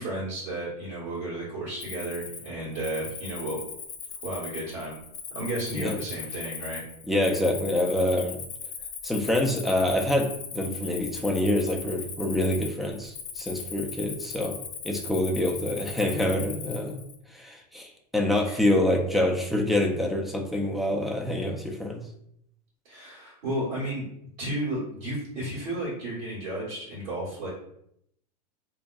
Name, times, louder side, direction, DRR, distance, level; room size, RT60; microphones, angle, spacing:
voice 1, 0.0-3.6 4.2-5.0 5.3-6.8 18.4-18.6 22.8-24.0 24.4-27.5, right 1 dB, 70° right, -9 dB, 1.3 m, -33 dB
Cricket, 1.8-17.2, left 6 dB, 75° left, 0.5 m, -39 dB
voice 2, 7.1-8.4 9.0-14.6 14.8-17.0 17.3-22.0, left 1 dB, ahead, 1 dB, 0.4 m, -26 dB
2.6 x 2.2 x 2.4 m, 0.72 s
hypercardioid pair, 95°, 21 cm